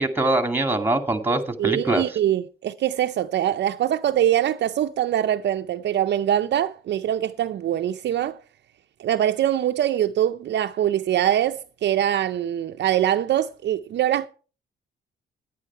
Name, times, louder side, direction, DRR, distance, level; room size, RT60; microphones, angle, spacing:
voice 1, 0.0-2.0, right 2 dB, 10° right, 2.2 m, -23 dB
voice 2, 1.6-8.4 9.0-14.3, right 11 dB, 60° right, 0.6 m, -23 dB
10.5 x 9.9 x 4.5 m
cardioid pair, 90°, 20 cm